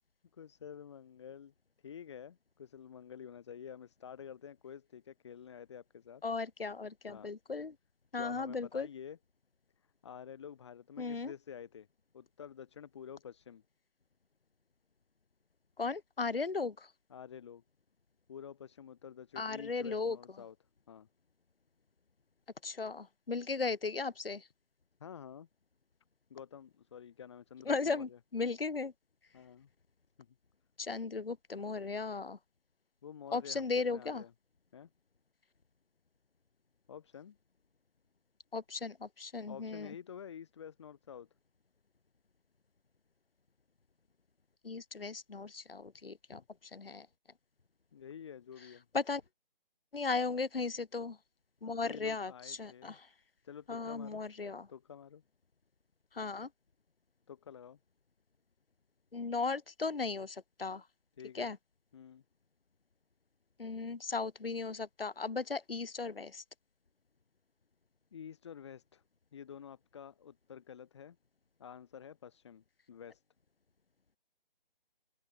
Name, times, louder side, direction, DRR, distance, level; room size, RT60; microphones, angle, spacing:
voice 1, 0.3-1.5 1.8-6.2 7.1-7.3 8.2-9.2 10.0-11.9 12.1-13.6 17.1-17.6 18.3-20.6 20.9-21.1 25.0-25.5 26.3-28.2 29.3-29.7 30.2-30.4 33.0-34.3 34.7-34.9 36.9-37.4 39.5-41.3 46.3-46.4 47.9-48.9 51.8-53.0 53.4-54.2 54.7-55.2 57.3-57.8 61.2-61.5 61.9-62.2 68.1-69.0 69.3-71.2 71.6-73.2, left 8 dB, 30° left, 6.4 m, -49 dB
voice 2, 6.2-7.7 8.1-8.9 11.0-11.3 15.8-16.9 19.4-20.2 22.6-24.5 27.7-28.9 30.8-32.4 33.3-34.2 38.5-39.9 44.6-47.1 48.9-49.2 49.9-51.2 51.6-53.1 53.7-54.7 56.1-56.5 59.1-60.9 61.3-61.6 63.6-66.4, left 4 dB, 70° left, 3.9 m, -36 dB
open air
hypercardioid pair, 175°, 29 cm